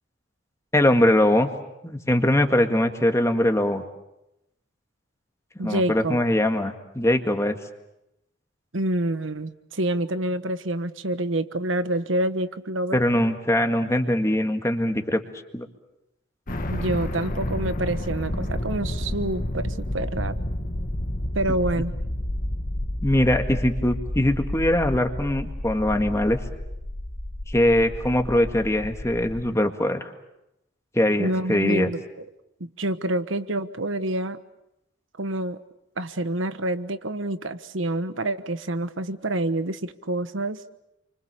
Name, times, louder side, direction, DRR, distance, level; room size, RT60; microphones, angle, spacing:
voice 1, 0.7-1.5 1.8-3.8 5.6-7.6 12.9-15.2 15.5-15.7 23.0-26.4 27.5-30.1 30.9-31.9, left 1 dB, 15° left, 5 dB, 1.9 m, -22 dB
voice 2, 5.6-6.2 8.7-13.0 16.7-20.3 21.3-21.9 31.2-32.3 32.6-34.4 35.2-35.6 36.0-40.6, right 1 dB, 80° right, 12 dB, 1.3 m, -27 dB
sound 1, 16.5-29.5, left 1 dB, 45° left, 1.6 m, -30 dB
29.5 x 25.0 x 6.9 m, 0.88 s
head